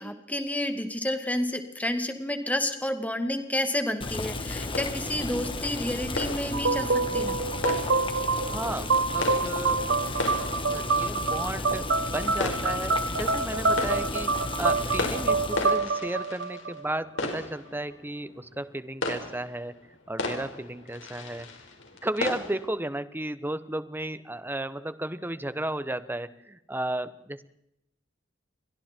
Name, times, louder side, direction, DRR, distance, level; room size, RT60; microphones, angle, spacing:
voice 1, 0.0-7.4, left 1 dB, 10° left, 7 dB, 2.2 m, -30 dB
Boiling, 4.0-15.8, left 2 dB, 25° left, 1.8 m, -34 dB
sound 1, 4.6-22.7, left 2 dB, 75° left, 5.0 m, -37 dB
sound 2, 6.5-17.2, right 3 dB, 70° right, 1.2 m, -27 dB
voice 2, 8.4-10.2 10.7-21.5 22.0-27.4, right 1 dB, 10° right, 13 dB, 1.1 m, -34 dB
29.5 x 23.5 x 4.5 m, 0.81 s
head